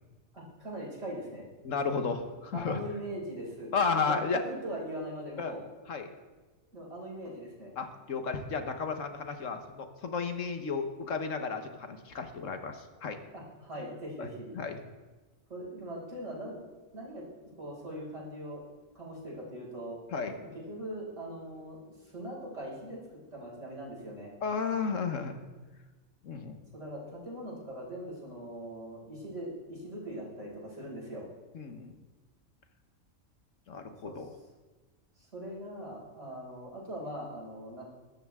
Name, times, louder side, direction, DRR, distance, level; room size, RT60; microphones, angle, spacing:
voice 1, 0.3-1.4 2.5-5.6 6.7-7.7 13.3-14.5 15.5-16.7 16.9-18.6 18.9-20.0 20.4-23.0 23.3-24.3 26.7-31.3 34.0-34.2 35.2-37.8, right 1 dB, 65° right, -5 dB, 5.9 m, -41 dB
voice 2, 1.6-2.8 3.7-4.4 5.4-5.5 5.9-6.1 7.8-13.2 14.2-14.3 14.5-14.8 20.1-20.4 24.4-25.4 26.2-26.6 31.5-31.9 33.7-34.3, left 5 dB, 75° left, 7 dB, 1.5 m, -33 dB
21.5 x 13.0 x 3.6 m, 1.2 s
omnidirectional pair, 1.3 m